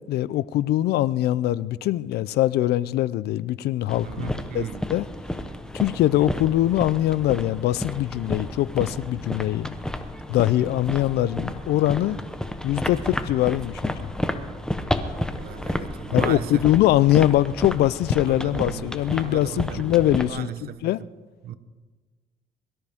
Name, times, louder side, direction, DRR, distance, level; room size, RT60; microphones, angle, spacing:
voice 1, 0.1-5.1 5.7-9.8 10.3-12.2 12.6-14.1 16.1-21.0, left 14 dB, 75° left, 0.5 m, -22 dB
sound 1, 3.9-20.3, left 1 dB, 5° left, 0.9 m, -31 dB
voice 2, 4.0-4.8 15.3-16.6 18.3-18.9 19.1-20.9 21.4-21.6, right 10 dB, 65° right, 0.9 m, -36 dB
22.5 x 13.5 x 3.6 m
cardioid pair, 110°, 17 cm